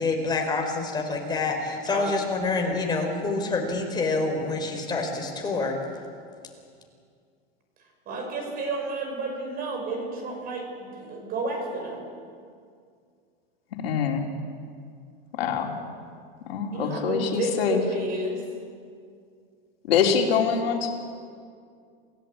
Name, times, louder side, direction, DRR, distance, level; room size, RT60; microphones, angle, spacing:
voice 1, 0.0-5.8, left 3 dB, 15° left, 2 dB, 3.9 m, -27 dB
voice 2, 1.9-2.3 8.1-12.1 16.7-18.4, right 2 dB, 30° right, 3 dB, 5.9 m, -31 dB
voice 3, 13.7-14.3 15.3-15.7 16.4-17.8 19.8-20.9, left 7 dB, 80° left, 2 dB, 3.6 m, -24 dB
27.5 x 16.5 x 8.6 m, 2.2 s
supercardioid pair, 150°, 30 cm